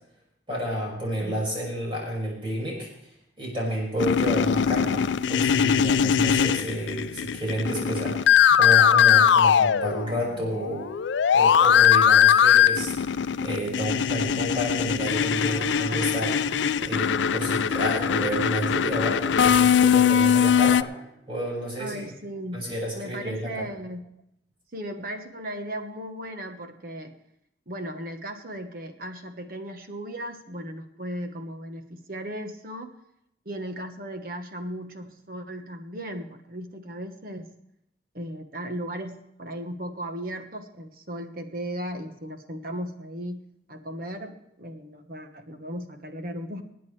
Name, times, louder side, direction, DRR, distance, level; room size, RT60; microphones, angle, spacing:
voice 1, 0.5-2.9 3.4-10.9 11.3-13.1 13.4-16.4 16.8-20.9 21.3-22.0 22.5-23.5, equal, 30° right, -3 dB, 6.0 m, -30 dB
sound 1, 4.0-10.3 10.6-20.8, left 8 dB, 85° left, 0.4 m, -21 dB
sound 2, 14.5-23.4, equal, 80° right, 5.4 m, -42 dB
voice 2, 21.8-22.7 22.9-24.1 24.7-27.1 27.7-32.9 33.4-37.5 38.1-43.4 43.7-46.6, equal, 50° right, 6 dB, 1.3 m, -36 dB
25.0 x 9.4 x 3.4 m, 0.79 s
head